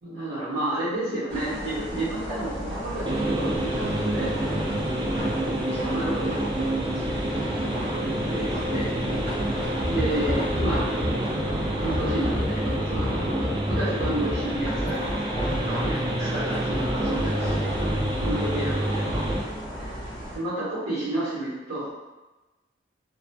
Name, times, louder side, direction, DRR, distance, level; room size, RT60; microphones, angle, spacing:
voice 1, 0.0-4.7 5.4-7.4 8.2-8.9 9.8-10.8 11.8-13.3 13.7-17.8 18.2-19.9 20.3-21.9, right 1 dB, 85° right, -13 dB, 1.3 m, -32 dB
sound 1, 1.3-20.4, equal, 45° right, 1.0 m, -34 dB
sound 2, 3.1-19.4, right 1 dB, 25° right, 0.3 m, -28 dB
sound 3, 9.8-11.1 11.9-15.9 16.7-18.3 19.1-19.4, left 1 dB, 30° left, 0.7 m, -29 dB
2.9 x 2.6 x 2.2 m, 1.1 s
head